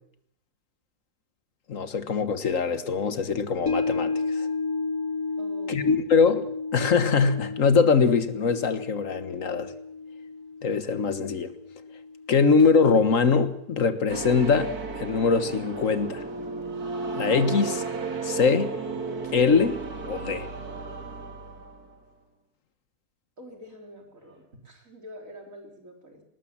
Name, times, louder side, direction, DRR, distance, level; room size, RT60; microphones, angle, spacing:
voice 1, 1.7-4.1 4.4-4.5 5.7-6.4 6.7-9.7 10.6-11.5 12.3-14.7 15.0-16.2 17.1-17.8 18.2-18.7 19.3-19.8 20.0-20.5, left 5 dB, 60° left, 1.7 m, -22 dB
sound 1, 3.7-14.0 14.4-14.5, left 4 dB, 80° left, 2.7 m, -33 dB
voice 2, 5.4-6.1 23.4-26.2, equal, 55° right, 4.1 m, -46 dB
sound 2, 14.1-22.0, right 4 dB, 75° right, 2.6 m, -34 dB
19.5 x 19.0 x 7.4 m
omnidirectional pair, 1.6 m